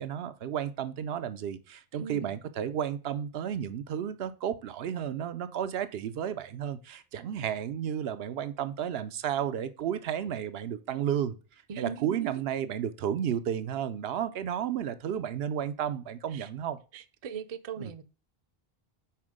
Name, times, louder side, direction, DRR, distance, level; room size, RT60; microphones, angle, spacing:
voice 1, 0.0-11.4 11.8-16.8 17.8-17.9, right 9 dB, 80° right, 0.8 m, -32 dB
voice 2, 1.9-2.4 11.7-12.5 16.3-16.5 16.9-18.0, right 7 dB, 45° right, 0.5 m, -40 dB
5.8 x 4.3 x 4.9 m
omnidirectional pair, 1.0 m